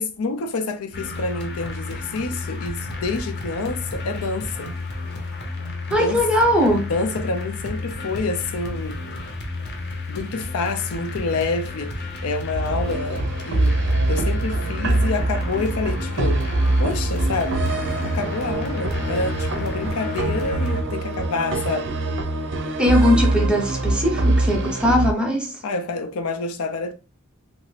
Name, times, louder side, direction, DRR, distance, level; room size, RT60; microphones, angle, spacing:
voice 1, 0.0-4.7 5.9-6.2 6.8-9.0 10.1-13.8 14.1-16.4 16.8-17.7 18.0-21.9 25.6-26.9, left 3 dB, 85° left, 0.5 m, -28 dB
sound 1, 0.9-20.8, left 2 dB, 55° left, 0.8 m, -32 dB
voice 2, 5.9-6.9 22.8-25.5, equal, 5° right, 0.6 m, -20 dB
sound 2, 12.5-25.1, right 2 dB, 60° right, 0.5 m, -23 dB
2.8 x 2.6 x 3.2 m
head